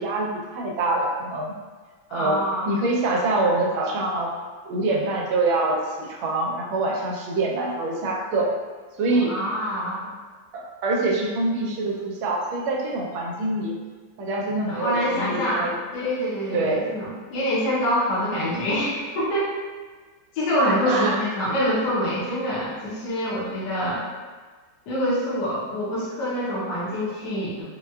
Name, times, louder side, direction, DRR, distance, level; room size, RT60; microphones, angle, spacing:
voice 1, 0.0-1.5 2.1-4.3 4.6-8.5 9.0-9.3 10.5-13.8 14.2-15.7 16.5-16.8 20.9-21.2, right 2 dB, 80° right, -1 dB, 1.4 m, -25 dB
voice 2, 2.1-2.7 9.1-10.1 14.7-15.7 15.9-19.5 20.3-24.0 24.9-27.6, equal, 65° left, -8 dB, 1.3 m, -25 dB
4.2 x 2.2 x 2.3 m, 1.4 s
omnidirectional pair, 2.2 m